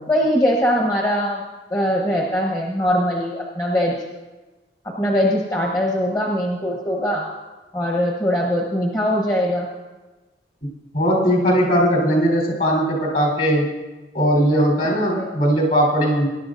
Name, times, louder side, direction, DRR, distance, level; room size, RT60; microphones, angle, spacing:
voice 1, 0.1-1.4 1.7-3.9 4.8-7.3 7.7-9.7 15.1-15.3, equal, 20° left, -2 dB, 1.0 m, -21 dB
voice 2, 10.9-13.7 14.1-16.3, equal, 55° left, -2 dB, 3.6 m, -19 dB
20.0 x 11.0 x 2.6 m, 1.2 s
head